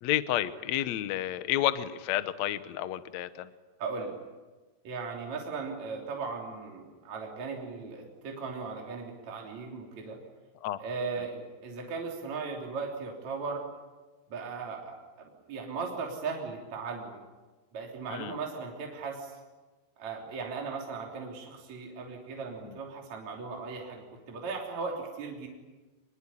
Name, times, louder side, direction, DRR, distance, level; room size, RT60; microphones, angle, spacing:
voice 1, 0.0-3.5 10.6-10.8 18.1-18.4 22.6-22.8, left 13 dB, 80° left, 12 dB, 1.6 m, -30 dB
voice 2, 3.8-4.1 4.8-10.2 10.8-13.7 14.3-17.2 17.7-19.4 20.0-25.5, right 4 dB, 45° right, 0 dB, 4.3 m, -37 dB
25.0 x 23.0 x 10.0 m, 1.2 s
omnidirectional pair, 4.7 m